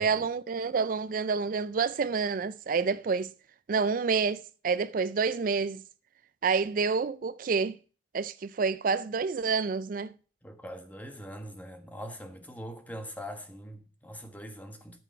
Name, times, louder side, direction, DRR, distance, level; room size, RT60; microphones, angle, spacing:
voice 1, 0.0-3.3 3.7-5.8 6.4-7.8 8.1-10.1, right 5 dB, 45° right, 0.4 m, -28 dB
voice 2, 10.4-15.0, equal, 10° left, 1.3 m, -42 dB
13.5 x 6.1 x 4.4 m
head